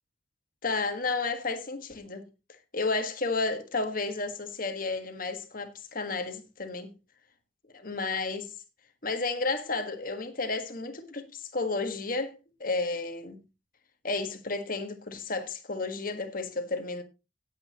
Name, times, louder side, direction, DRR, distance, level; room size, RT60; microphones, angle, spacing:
voice 1, 0.6-2.2 2.7-6.9 7.7-8.5 9.0-13.4 14.0-17.0, left 3 dB, 45° left, 1.6 m, -32 dB
16.5 x 8.0 x 3.0 m
head